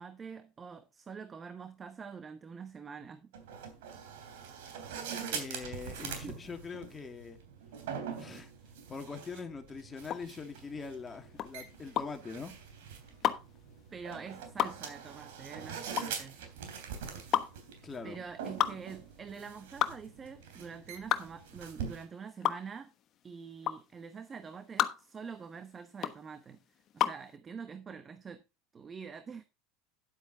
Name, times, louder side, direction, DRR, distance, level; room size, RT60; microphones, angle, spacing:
voice 1, 0.0-3.3 5.9-6.4 13.9-16.4 18.0-22.9 23.2-26.6 26.9-28.4 28.7-29.4, right 6 dB, 30° right, 1.0 m, -46 dB
sound 1, 3.3-22.0, right 7 dB, 75° right, 3.2 m, -44 dB
voice 2, 5.3-7.4 8.1-8.5 8.9-12.5 17.8-18.2, left 5 dB, 20° left, 2.2 m, -42 dB
sound 2, 10.0-27.3, left 10 dB, 45° left, 1.1 m, -34 dB
10.5 x 8.0 x 3.8 m
hypercardioid pair, 90°, 0 cm